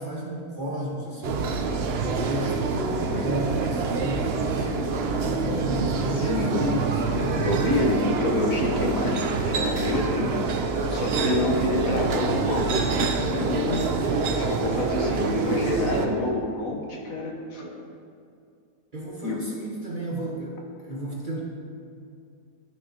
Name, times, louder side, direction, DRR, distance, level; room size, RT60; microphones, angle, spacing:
voice 1, 0.0-1.6 2.0-4.8 5.1-7.6 15.0-15.7 18.9-21.4, equal, 35° right, -4 dB, 1.0 m, -33 dB
sound 1, 1.2-16.1, right 4 dB, 65° right, 0.6 m, -26 dB
voice 2, 6.1-6.6 7.4-17.8 19.2-19.4, left 2 dB, 60° left, 0 dB, 1.3 m, -28 dB
13.0 x 6.4 x 2.8 m, 2.4 s
omnidirectional pair, 1.7 m